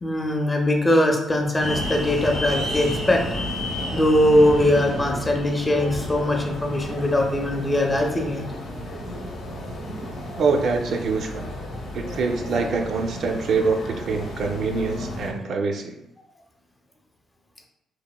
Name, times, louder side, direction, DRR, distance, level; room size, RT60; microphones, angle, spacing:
voice 1, 0.0-3.2 3.9-8.4, left 1 dB, 20° left, 2 dB, 0.4 m, -21 dB
sound 1, 1.6-15.3, left 1 dB, 65° left, 0.6 m, -32 dB
voice 2, 10.4-11.5 11.9-15.9, right 4 dB, 65° right, 4 dB, 0.3 m, -25 dB
2.8 x 2.1 x 2.2 m, 0.88 s
cardioid pair, 90°, 0 cm